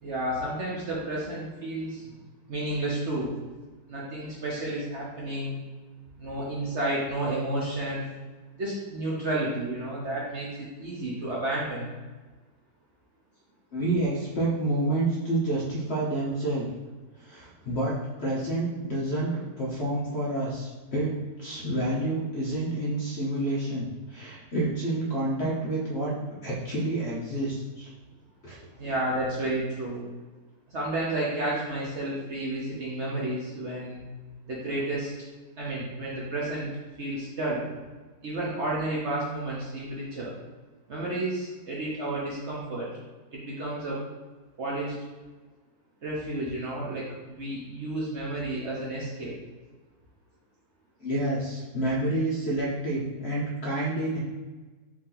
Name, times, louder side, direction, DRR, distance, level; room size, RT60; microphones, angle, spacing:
voice 1, 0.0-2.1 2.5-3.3 3.9-5.6 6.2-8.1 8.6-11.9 28.8-30.0 30.7-34.0 34.5-35.1 35.6-36.7 37.0-37.6 38.2-40.3 40.9-42.9 43.3-44.0 44.6-45.0 46.0-49.3, right 1 dB, 50° right, -5 dB, 0.9 m, -31 dB
voice 2, 13.7-16.7 17.2-27.9 28.4-28.6 51.0-54.2, right 1 dB, 50° left, -5 dB, 0.9 m, -29 dB
4.7 x 2.8 x 3.9 m, 1.3 s
omnidirectional pair, 1.8 m